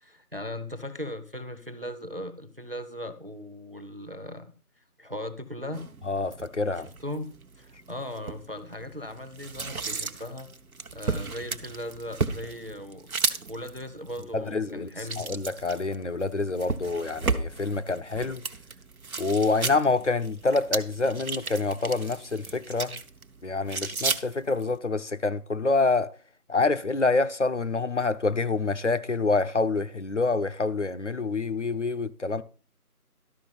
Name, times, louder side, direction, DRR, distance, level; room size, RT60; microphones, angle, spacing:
voice 1, 0.0-4.5 5.0-5.9 7.0-10.5 10.9-13.1 13.5-15.3, left 1 dB, 40° right, 0.7 m, -38 dB
sound 1, 5.7-24.8, right 4 dB, 65° right, 0.9 m, -35 dB
voice 2, 6.1-6.9 14.3-14.9 15.2-18.4 19.2-23.0 23.4-26.1 26.5-32.4, left 3 dB, 55° left, 0.5 m, -27 dB
12.0 x 5.6 x 5.5 m
figure-of-eight pair, 175°, 45 cm